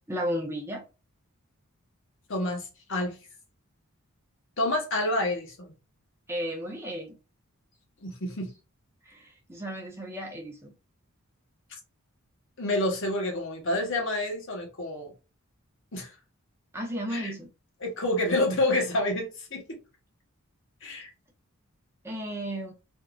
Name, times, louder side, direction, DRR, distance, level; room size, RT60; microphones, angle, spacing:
voice 1, 0.1-0.8 6.3-7.2 9.1-10.7 16.7-17.5 22.0-22.7, equal, 10° right, 0.7 m, -34 dB
voice 2, 2.3-3.1 4.6-5.8 8.0-8.5 11.7-11.8 12.6-15.1 15.9-16.1 17.1-17.3 17.8-19.8 20.8-21.1, left 1 dB, 55° left, 1.0 m, -28 dB
3.6 x 2.6 x 2.4 m
head